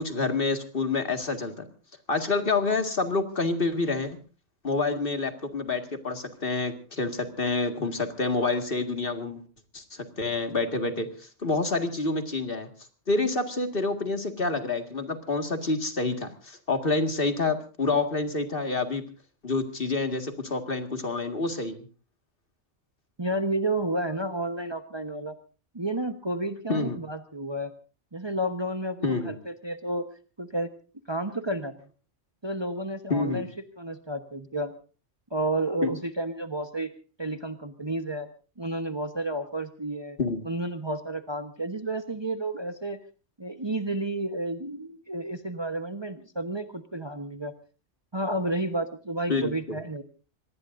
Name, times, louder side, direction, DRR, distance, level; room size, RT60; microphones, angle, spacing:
voice 1, 0.0-1.7 2.1-4.2 4.6-9.4 9.7-12.7 13.1-19.0 19.4-21.9 26.7-27.0 29.0-29.4 33.1-33.4 35.8-35.9 40.2-40.4 49.3-49.8, left 3 dB, 45° left, 7 dB, 2.1 m, -28 dB
voice 2, 23.2-25.4 25.7-27.7 28.1-30.0 30.4-30.7 31.1-31.7 32.4-33.5 33.8-34.7 35.3-36.9 37.2-38.3 38.6-40.2 40.4-43.0 43.4-47.5 48.1-50.0, right 1 dB, 20° right, 8 dB, 1.1 m, -31 dB
26.0 x 19.5 x 2.6 m, 0.35 s
omnidirectional pair, 1.3 m